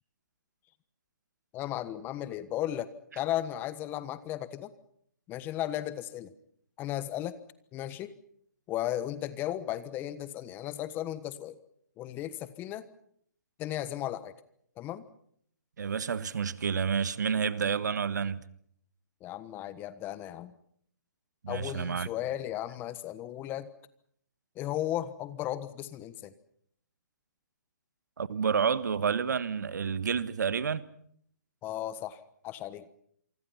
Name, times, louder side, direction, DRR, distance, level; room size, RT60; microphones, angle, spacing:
voice 1, 1.5-4.7 5.3-6.3 6.8-7.4 7.7-8.1 8.7-11.6 12.0-12.9 13.6-14.3 14.8-15.0 19.2-20.5 21.5-23.7 24.6-26.3 31.6-32.9, left 13 dB, 20° left, 1.3 m, -35 dB
voice 2, 15.8-18.4 21.4-22.1 28.2-30.9, right 6 dB, 65° right, 1.5 m, -29 dB
27.5 x 24.5 x 5.7 m
hypercardioid pair, 145°, 10 cm